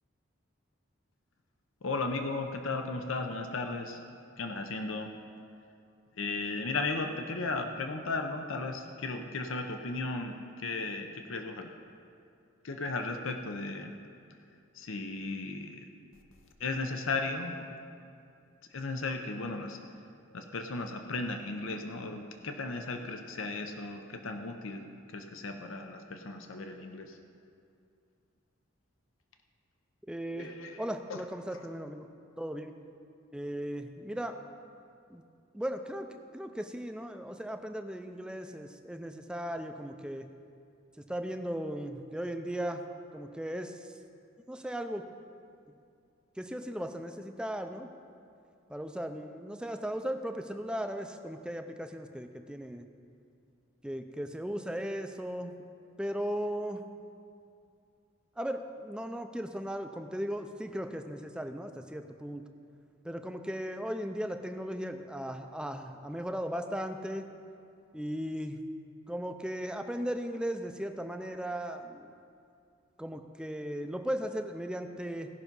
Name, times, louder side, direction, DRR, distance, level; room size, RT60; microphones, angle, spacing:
voice 1, 1.8-4.0 4.4-5.1 6.2-11.7 12.6-13.9 14.7-15.8 16.6-17.6 18.7-19.8 20.3-27.2 30.3-31.2 31.5-31.9, left 3 dB, 80° left, 5 dB, 0.7 m, -36 dB
voice 2, 30.1-30.5 30.8-32.1 32.4-32.7 33.3-34.4 35.1-35.2 35.5-40.3 41.1-42.8 43.1-43.9 44.5-45.0 46.4-47.9 48.7-52.9 53.8-55.5 56.0-56.9 58.4-62.4 63.0-67.3 67.9-68.6 69.1-72.1 73.0-75.3, equal, 5° right, 6 dB, 0.4 m, -37 dB
16.5 x 5.9 x 5.4 m, 2.5 s
head